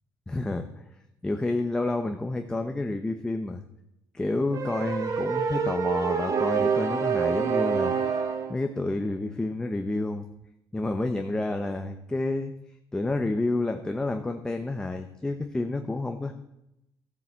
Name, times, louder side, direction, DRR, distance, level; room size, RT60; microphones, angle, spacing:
voice 1, 0.3-0.8 1.2-3.6 4.1-7.9 8.5-10.3 10.7-12.5 12.9-16.3, left 2 dB, 10° left, 6 dB, 0.8 m, -29 dB
sound 1, 4.5-8.6, right 6 dB, 45° right, 1.7 m, -26 dB
14.5 x 7.7 x 7.4 m, 0.86 s
cardioid pair, 135°, 8 cm